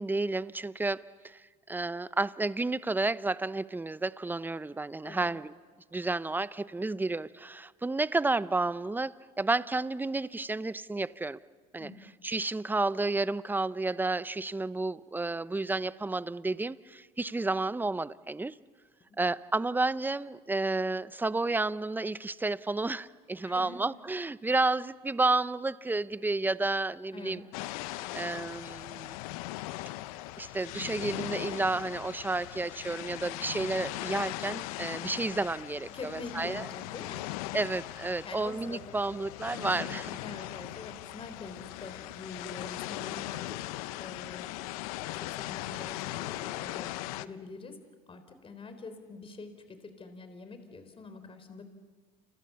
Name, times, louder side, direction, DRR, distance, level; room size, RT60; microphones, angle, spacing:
voice 1, 0.0-5.5 5.9-11.4 11.7-11.9 12.2-18.6 19.2-27.4 28.1-29.2 30.4-36.7 37.5-40.1, right 2 dB, 10° right, 17 dB, 0.8 m, -31 dB
voice 2, 23.4-23.8 27.1-27.5 35.9-37.3 38.2-39.0 40.2-44.5 45.1-46.9 47.2-47.8 48.1-51.6, left 4 dB, 30° left, 9 dB, 3.9 m, -45 dB
sound 1, 27.5-47.3, left 17 dB, 80° left, 0.8 m, -39 dB
29.0 x 28.5 x 7.0 m, 1.5 s
hypercardioid pair, 80°, 18 cm